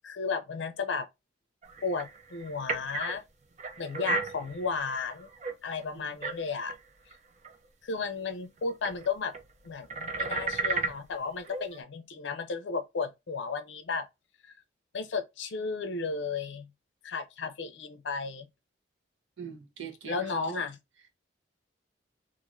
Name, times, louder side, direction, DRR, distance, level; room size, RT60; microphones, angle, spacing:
voice 1, 0.0-1.1 1.8-3.2 3.8-5.3 5.6-6.7 7.8-9.3 9.6-14.1 14.9-16.7 17.0-18.5 20.1-20.8, left 4 dB, 70° left, 0.5 m, -34 dB
sound 1, 1.6-3.2 3.6-5.8 6.2-6.8 7.1-7.2 7.4-7.6 8.9-9.1 9.3-11.0 11.4-11.8, right 4 dB, 35° right, 0.4 m, -35 dB
voice 2, 19.4-20.6, right 6 dB, 80° right, 0.8 m, -42 dB
2.5 x 2.5 x 3.0 m
head